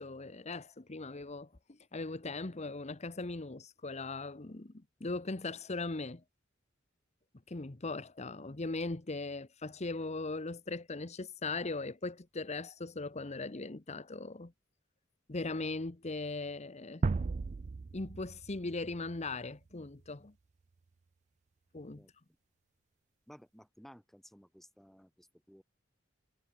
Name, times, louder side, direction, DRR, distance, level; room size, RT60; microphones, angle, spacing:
voice 1, 0.0-1.5 1.9-6.2 7.5-14.5 15.3-17.0 17.9-20.3 21.7-22.0, left 3 dB, 35° left, 1.0 m, -39 dB
sound 1, 17.0-20.0, right 4 dB, 35° right, 0.4 m, -36 dB
voice 2, 23.3-25.6, equal, ahead, 1.7 m, -57 dB
head